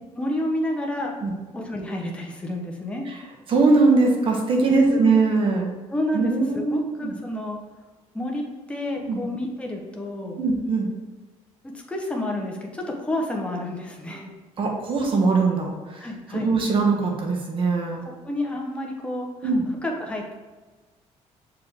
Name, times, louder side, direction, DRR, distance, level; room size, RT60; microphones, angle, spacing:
voice 1, 0.2-1.2 1.5-3.0 4.7-5.1 5.9-7.6 8.1-10.4 11.7-14.3 16.0-16.5 18.0-19.5 19.8-20.3, left 1 dB, 10° left, 0 dB, 0.9 m, -29 dB
voice 2, 3.5-5.7 6.1-7.1 9.1-9.2 10.4-10.9 14.6-16.1 16.4-18.0 19.4-19.7, right 3 dB, 45° right, 1 dB, 1.4 m, -21 dB
6.2 x 4.9 x 3.6 m, 1.3 s
cardioid pair, 125°, 12 cm